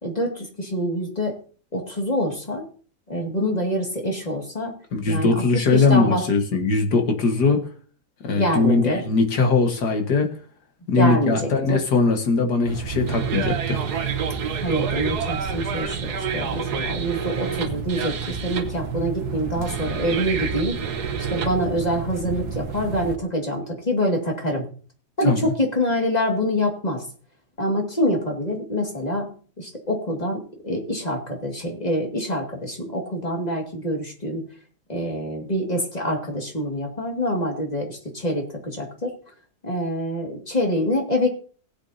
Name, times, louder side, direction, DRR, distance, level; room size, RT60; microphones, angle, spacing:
voice 1, 0.0-1.4 1.7-2.7 3.1-4.7 5.1-6.3 8.3-9.1 11.0-11.8 14.6-21.0 21.3-24.7 25.2-27.0 27.6-29.3 29.6-34.4 34.9-39.1 39.6-41.3, equal, 25° left, 1 dB, 2.2 m, -26 dB
voice 2, 4.9-7.6 8.2-10.3 10.9-13.8 25.3-25.4, left 3 dB, 90° left, 4 dB, 2.1 m, -20 dB
sound 1, 12.7-23.2, right 6 dB, 75° right, 1.6 m, -28 dB
18.0 x 8.2 x 2.8 m, 0.42 s
omnidirectional pair, 1.7 m